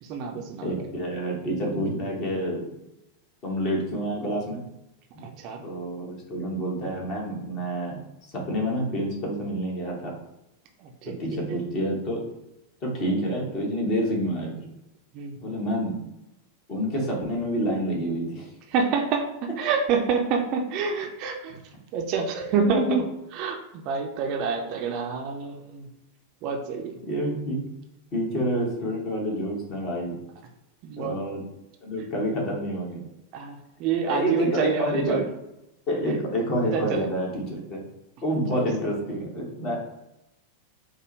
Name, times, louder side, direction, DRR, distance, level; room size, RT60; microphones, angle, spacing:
voice 1, 0.0-0.8 5.2-5.6 10.8-11.1 15.1-15.4 18.7-21.6 21.9-23.0 23.3-25.9 26.4-26.9 30.8-31.2 33.3-35.2 36.7-37.1 38.5-38.7, right 5 dB, 40° right, 2 dB, 0.5 m, -27 dB
voice 2, 0.6-2.6 3.4-4.6 5.1-5.3 5.6-8.0 8.3-10.1 11.2-12.2 12.8-14.5 15.4-16.0 16.7-18.5 22.6-23.0 27.0-27.6 28.1-30.2 31.0-31.4 31.8-33.0 34.0-35.2 35.9-37.8 38.2-39.8, equal, 40° left, -2 dB, 1.4 m, -28 dB
5.2 x 2.2 x 3.1 m, 0.92 s
figure-of-eight pair, 90°, 0 cm